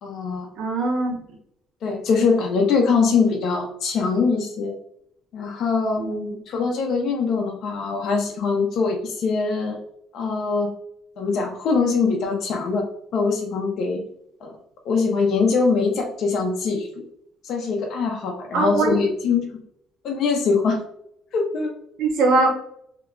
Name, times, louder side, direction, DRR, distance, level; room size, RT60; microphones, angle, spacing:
voice 1, 0.0-0.5 1.8-4.7 5.3-6.0 6.5-9.8 10.1-10.7 11.2-12.9 13.1-14.0 14.4-14.5 14.8-16.9 17.4-19.5 20.0-20.8 21.3-21.7, left 4 dB, 60° left, 1 dB, 0.6 m, -22 dB
voice 2, 0.6-1.2 6.0-6.4 18.5-19.0 22.0-22.5, right 3 dB, 75° right, -1 dB, 0.8 m, -21 dB
2.9 x 2.2 x 3.6 m, 0.73 s
cardioid pair, 140°, 0 cm